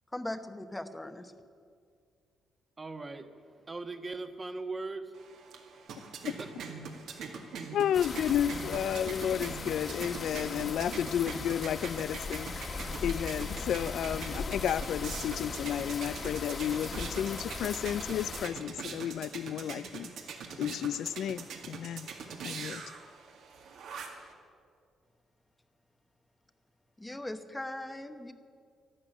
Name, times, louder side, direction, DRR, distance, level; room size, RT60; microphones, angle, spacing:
voice 1, 0.1-1.3 27.0-28.3, left 1 dB, 10° left, 9 dB, 1.0 m, -39 dB
voice 2, 2.8-3.3 3.7-5.1 6.4-6.5, right 3 dB, 25° right, 7 dB, 1.3 m, -39 dB
sound 1, 5.1-24.3, right 5 dB, 80° right, 2.1 m, -43 dB
voice 3, 7.7-12.5 13.0-20.1 20.6-22.1 22.4-22.8, left 10 dB, 75° left, 16 dB, 0.3 m, -32 dB
sound 2, 7.9-18.5, left 3 dB, 45° left, 1.7 m, -39 dB
12.0 x 12.0 x 9.0 m, 2.2 s
cardioid pair, 90°, 0 cm